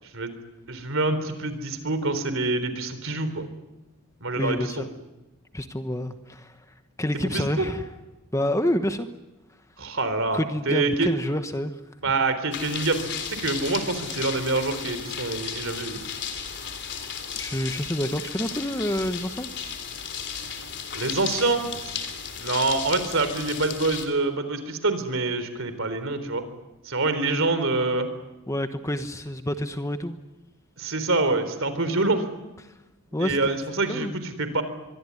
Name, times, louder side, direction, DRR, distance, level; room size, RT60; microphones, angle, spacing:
voice 1, 0.7-3.5 4.2-4.8 7.2-7.7 9.8-10.4 10.7-11.1 12.0-16.0 20.9-21.9 22.4-26.4 26.8-28.1 30.8-32.2 33.2-34.6, right 3 dB, 60° right, 11 dB, 3.8 m, -26 dB
voice 2, 4.4-4.8 5.5-6.6 7.0-7.8 8.3-9.1 10.3-11.8 17.3-19.5 28.5-30.2 32.6-32.7 33.1-33.4 33.9-34.1, left 1 dB, 15° left, 9 dB, 1.1 m, -28 dB
sound 1, 12.5-24.1, left 7 dB, 50° left, 3.6 m, -34 dB
24.5 x 23.5 x 9.8 m, 1.0 s
head